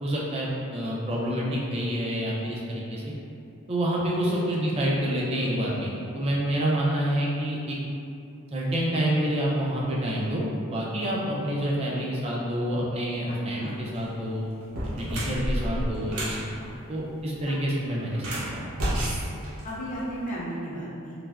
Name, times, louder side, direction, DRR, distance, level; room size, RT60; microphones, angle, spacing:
voice 1, 0.0-3.1 3.7-7.8 8.5-14.4 15.0-16.4 16.7-18.3 18.5-18.7, equal, 25° right, -4 dB, 0.3 m, -28 dB
sound 1, 13.8-14.1 14.6-16.4 18.1-20.2, equal, 80° right, 0.6 m, -30 dB
voice 2, 19.6-21.2, equal, 35° left, -7 dB, 0.5 m, -34 dB
3.2 x 2.1 x 2.3 m, 2.6 s
head